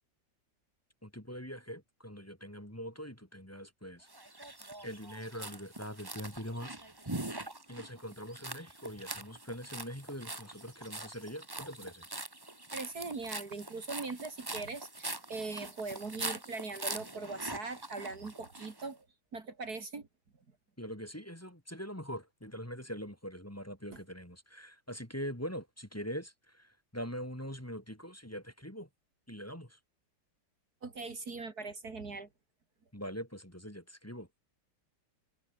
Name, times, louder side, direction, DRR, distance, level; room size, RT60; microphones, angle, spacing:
voice 1, 1.0-4.1 4.8-6.8 7.7-12.0 20.8-28.9 29.3-29.8 32.9-34.4, equal, 5° left, 3.1 m, -43 dB
sound 1, 4.1-18.9, right 2 dB, 10° right, 1.7 m, -43 dB
voice 2, 12.7-19.0 19.3-20.1 30.8-32.3, right 3 dB, 50° right, 3.0 m, -40 dB
omnidirectional pair, 2.1 m